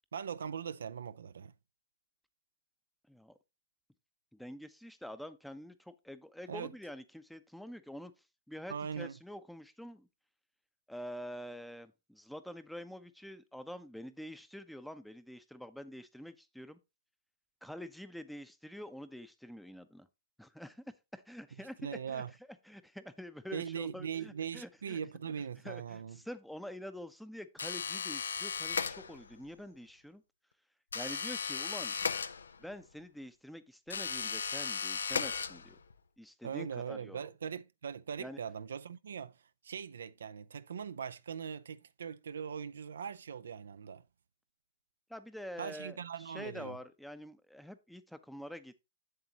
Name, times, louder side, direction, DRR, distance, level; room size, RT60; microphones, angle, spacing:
voice 1, 0.1-1.5 6.5-6.7 8.7-9.2 21.8-22.3 23.5-26.2 36.4-39.4 39.6-44.0 45.6-46.8, right 7 dB, 75° right, 0.4 m, -40 dB
voice 2, 3.1-3.4 4.3-8.1 8.5-10.1 10.9-16.8 17.6-20.1 20.4-20.8 21.1-22.2 22.7-25.0 25.6-30.2 30.9-31.9 32.6-35.8 36.2-37.3 38.2-38.4 45.1-48.8, equal, ahead, 0.6 m, -47 dB
sound 1, 27.6-29.4 30.9-32.8 33.9-35.9, left 6 dB, 85° left, 0.5 m, -36 dB
7.8 x 7.0 x 2.9 m
hypercardioid pair, 125°, 0 cm